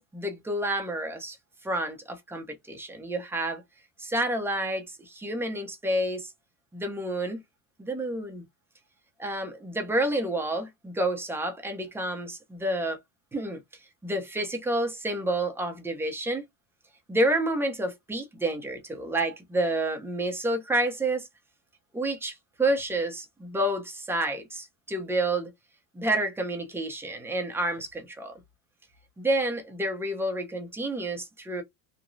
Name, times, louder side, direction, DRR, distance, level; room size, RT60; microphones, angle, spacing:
voice 1, 0.0-1.4 1.6-3.6 4.0-6.3 6.7-7.4 7.8-8.4 9.2-13.0 13.3-13.6 14.0-16.4 17.1-21.3 21.9-25.5 25.9-28.4 29.2-31.6, right 1 dB, 5° right, 0.7 m, -29 dB
3.0 x 2.2 x 2.6 m
supercardioid pair, 125°, 40 cm